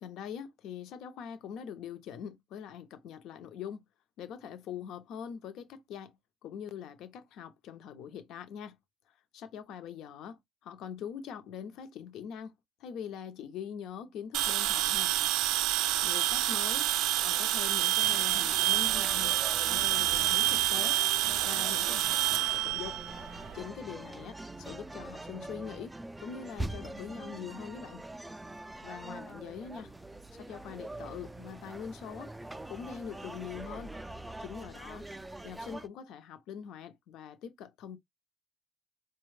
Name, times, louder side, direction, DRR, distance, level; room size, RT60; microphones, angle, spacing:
voice 1, 0.0-3.8 4.2-6.2 6.4-8.8 9.3-15.3 16.0-16.9 17.2-19.3 19.6-21.0 21.4-23.0 23.5-25.9 26.2-28.0 28.8-29.9 30.3-32.3 32.7-33.9 34.4-35.1 35.4-38.0, left 8 dB, 70° left, 0.7 m, -43 dB
sound 1, 14.3-23.6, right 14 dB, 85° right, 0.3 m, -28 dB
sound 2, 18.0-35.9, right 2 dB, 10° right, 0.3 m, -44 dB
4.4 x 2.2 x 3.2 m
cardioid pair, 145°, 0 cm